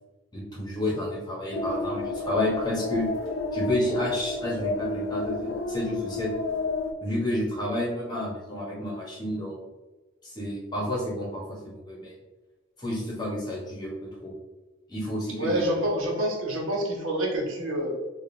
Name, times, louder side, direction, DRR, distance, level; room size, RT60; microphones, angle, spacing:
voice 1, 0.3-3.1 3.5-6.3 7.0-9.6 10.2-12.2 12.8-14.3 14.9-15.7, left 1 dB, 20° left, -4 dB, 1.0 m, -30 dB
sound 1, 1.5-6.9, left 2 dB, 75° left, 0.5 m, -31 dB
voice 2, 15.4-18.0, equal, 90° right, -1 dB, 0.9 m, -27 dB
4.9 x 2.4 x 2.6 m, 1.2 s
head